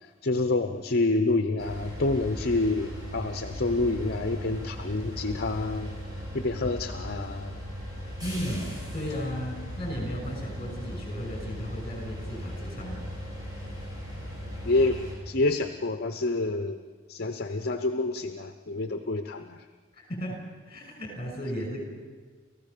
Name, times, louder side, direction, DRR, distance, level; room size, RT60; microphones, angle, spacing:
voice 1, 0.2-5.9 6.3-7.5 14.6-16.8 17.1-19.6, left 2 dB, 50° left, 8 dB, 0.9 m, -28 dB
sound 1, 1.6-15.1, equal, 20° right, 7.0 m, -38 dB
voice 2, 8.2-8.7 8.9-13.1 19.9-20.4 20.6-21.8, equal, 30° left, 2 dB, 6.3 m, -35 dB
29.5 x 15.5 x 6.8 m, 1.5 s
head